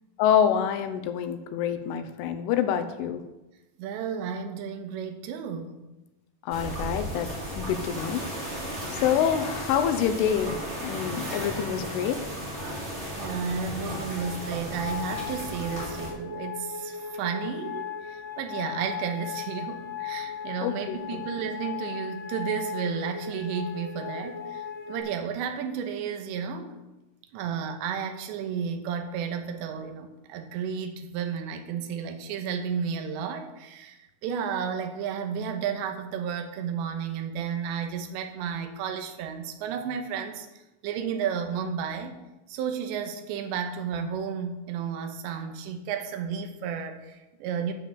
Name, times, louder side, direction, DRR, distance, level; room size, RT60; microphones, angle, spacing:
voice 1, 0.2-3.2 6.5-7.3 7.6-8.5 8.9-12.3 20.6-21.2, left 9 dB, 80° left, 8 dB, 3.4 m, -26 dB
voice 2, 3.8-5.8 13.2-26.8 27.3-40.5 40.8-42.1 42.5-47.7, right 7 dB, 75° right, 5 dB, 3.2 m, -32 dB
sound 1, 6.5-16.1, equal, 15° right, 3.0 m, -35 dB
sound 2, 12.6-25.0, left 7 dB, 45° left, 2.1 m, -38 dB
13.5 x 7.1 x 6.8 m, 1.0 s
omnidirectional pair, 5.6 m